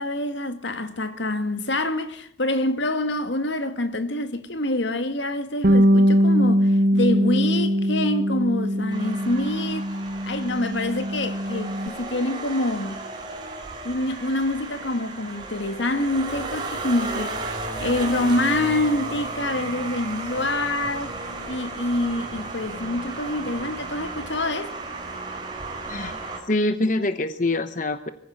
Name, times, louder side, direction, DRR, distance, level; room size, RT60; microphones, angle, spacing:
voice 1, 0.0-9.9 10.2-13.1 13.8-17.4 17.8-21.2 21.5-24.8, left 1 dB, 70° left, 1.8 m, -26 dB
Bass guitar, 5.6-11.9, equal, 45° right, 0.8 m, -21 dB
sound 1, 8.9-26.4, right 3 dB, 25° right, 4.8 m, -34 dB
voice 2, 25.9-28.1, left 2 dB, 40° left, 1.0 m, -25 dB
23.5 x 15.5 x 8.7 m
head